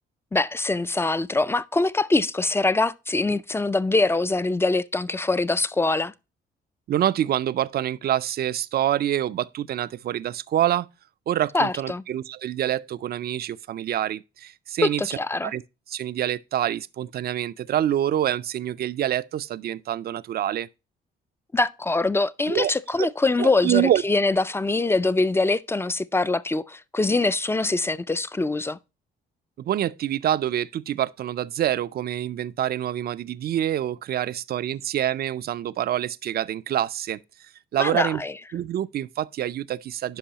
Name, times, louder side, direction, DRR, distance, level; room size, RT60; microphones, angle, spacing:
voice 1, 0.3-6.1 11.5-12.0 14.8-15.5 21.5-28.8 37.8-38.3, left 3 dB, 10° left, 0.3 m, -23 dB
voice 2, 6.9-10.9 11.3-15.0 15.4-15.6 15.9-20.7 22.5-22.7 23.0-23.1 23.4-24.0 29.6-38.2 38.5-40.2, right 11 dB, 50° right, 0.4 m, -26 dB
10.5 x 5.5 x 2.8 m
cardioid pair, 90°, 20 cm